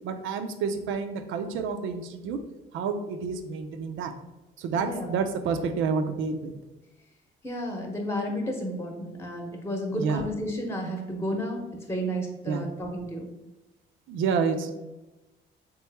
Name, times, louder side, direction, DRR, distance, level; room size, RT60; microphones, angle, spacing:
voice 1, 0.0-2.4 2.7-4.1 4.6-6.5 9.9-10.3 12.5-12.7 14.1-14.8, right 5 dB, 85° right, 7 dB, 0.5 m, -29 dB
voice 2, 4.8-5.1 7.4-11.6 11.9-13.3, equal, 10° left, 2 dB, 0.8 m, -32 dB
3.8 x 3.1 x 3.4 m, 1.0 s
cardioid pair, 90°, 20 cm